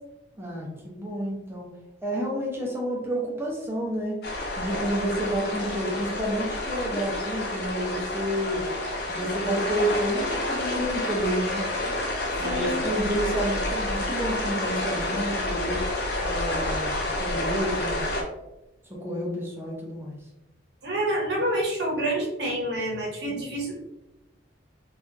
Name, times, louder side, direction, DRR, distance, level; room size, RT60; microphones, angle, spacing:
voice 1, 0.4-1.7 2.0-4.2 4.6-8.6 9.1-11.6 12.4-15.8 16.2-18.1 18.9-20.2, equal, 10° right, -3 dB, 0.4 m, -30 dB
sound 1, 4.2-18.2, left 1 dB, 55° left, 0.5 m, -29 dB
voice 2, 12.4-12.8 20.8-23.8, right 1 dB, 60° right, -2 dB, 0.8 m, -28 dB
2.7 x 2.3 x 2.4 m, 0.93 s
head